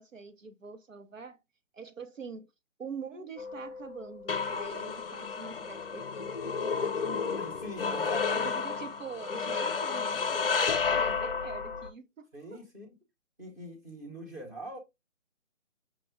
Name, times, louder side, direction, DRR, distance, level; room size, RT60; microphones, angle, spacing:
voice 1, 0.0-1.4 1.7-2.5 2.8-7.3 8.3-12.7, right 5 dB, 75° right, 1.0 m, -44 dB
sound 1, 3.4-11.9, left 5 dB, 45° left, 0.5 m, -31 dB
voice 2, 7.3-8.6 12.3-13.0 13.4-14.8, equal, 15° right, 0.9 m, -43 dB
5.9 x 2.3 x 3.6 m
figure-of-eight pair, 150°, 39 cm